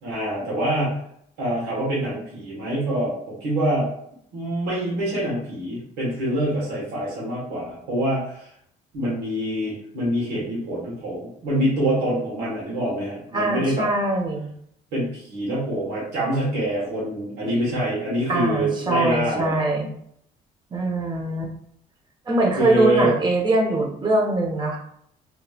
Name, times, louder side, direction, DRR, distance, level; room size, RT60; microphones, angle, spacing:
voice 1, 0.0-1.0 1.4-3.9 4.3-8.5 8.9-13.9 14.9-19.6 22.6-23.1, right 1 dB, 90° right, -6 dB, 1.4 m, -25 dB
voice 2, 13.3-14.5 18.3-19.9 20.7-21.5 22.3-24.8, right 2 dB, 25° right, 0 dB, 0.9 m, -22 dB
3.0 x 3.0 x 2.4 m, 0.69 s
cardioid pair, 110°, 17 cm